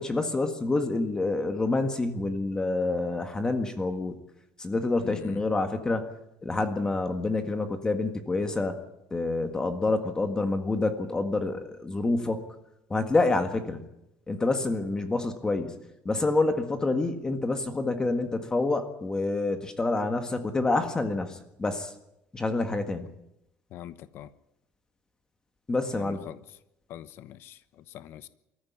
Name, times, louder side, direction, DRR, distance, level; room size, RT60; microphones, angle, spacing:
voice 1, 0.0-4.2 4.6-6.1 6.4-8.8 9.1-12.4 12.9-13.8 14.3-15.8 16.0-21.9 22.3-23.1 25.7-26.2, left 2 dB, 15° left, 1.7 m, -27 dB
voice 2, 5.0-5.4 23.7-24.3 25.9-26.6 26.9-28.3, left 12 dB, 60° left, 0.9 m, -43 dB
23.0 x 14.5 x 9.6 m
cardioid pair, 150°, 5 cm